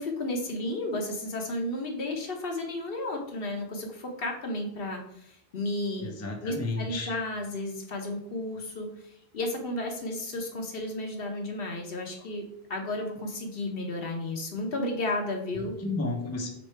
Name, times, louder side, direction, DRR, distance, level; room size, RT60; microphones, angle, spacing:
voice 1, 0.0-6.1 6.4-12.4 12.7-15.7, left 1 dB, 65° left, 2 dB, 1.0 m, -33 dB
voice 2, 6.0-7.1 15.8-16.5, left 2 dB, 20° left, 2 dB, 0.6 m, -32 dB
3.7 x 3.3 x 4.4 m, 0.73 s
omnidirectional pair, 1.0 m